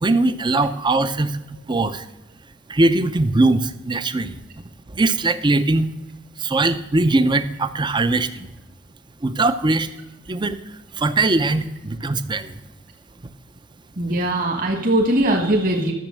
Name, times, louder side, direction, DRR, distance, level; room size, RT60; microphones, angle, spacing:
voice 1, 0.0-2.0 2.7-4.4 4.9-5.9 6.4-8.5 9.2-9.9 10.3-10.6 10.9-12.5, right 2 dB, 25° right, 11 dB, 0.6 m, -20 dB
voice 2, 14.0-15.9, right 1 dB, 45° right, 0 dB, 1.9 m, -20 dB
12.0 x 7.1 x 7.6 m, 0.92 s
head